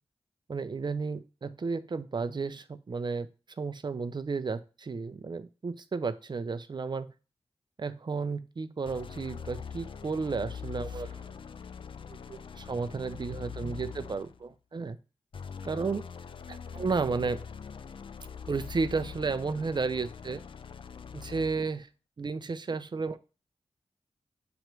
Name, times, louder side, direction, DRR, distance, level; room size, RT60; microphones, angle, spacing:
voice 1, 0.5-3.3 3.6-7.1 7.8-11.3 12.1-15.0 15.6-16.1 16.5-17.4 18.5-20.4 21.1-21.9 22.2-23.2, right 4 dB, 45° right, 12 dB, 0.6 m, -33 dB
sound 1, 8.8-14.5 15.3-21.7, left 6 dB, 55° left, 0.4 m, -43 dB
7.9 x 3.1 x 4.5 m, 0.33 s
cardioid pair, 65°, 11 cm